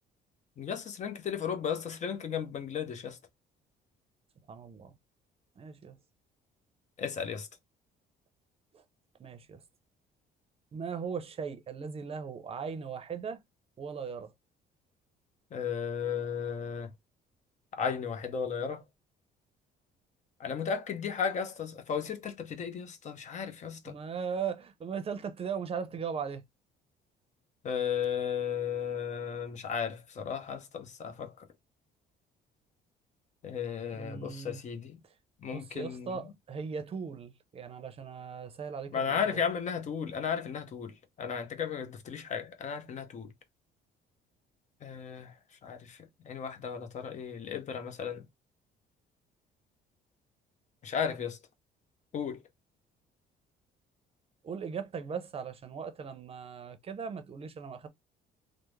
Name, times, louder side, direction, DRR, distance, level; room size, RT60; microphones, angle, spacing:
voice 1, 0.6-3.2 7.0-7.5 15.5-16.9 17.8-18.8 20.4-23.9 27.6-31.4 33.4-35.0 35.4-36.2 38.9-43.3 44.8-45.3 45.6-46.0 46.2-48.2 50.8-51.4 52.1-52.4, left 7 dB, 45° left, 0.8 m, -34 dB
voice 2, 4.5-4.9 5.6-6.0 9.2-9.6 10.7-13.4 13.8-14.3 23.9-26.4 33.9-34.6 35.5-39.4 54.4-57.9, right 6 dB, 35° right, 0.6 m, -38 dB
3.3 x 2.1 x 3.1 m
cardioid pair, 110°, 17 cm